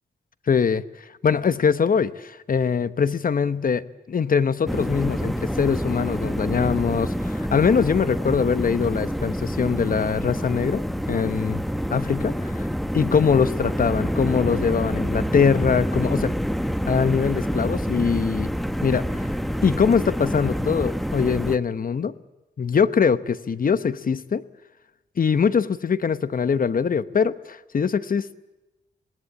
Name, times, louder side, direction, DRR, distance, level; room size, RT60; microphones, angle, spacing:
voice 1, 0.5-0.8 1.2-11.6 11.9-12.3 12.9-16.3 16.9-18.5 18.8-19.3 19.6-22.1 22.6-24.4 25.2-28.3, left 6 dB, 50° left, 15 dB, 1.0 m, -22 dB
sound 1, 4.7-21.6, equal, ahead, 1.1 m, -27 dB
26.5 x 19.0 x 8.7 m, 1.0 s
cardioid pair, 80°, 18 cm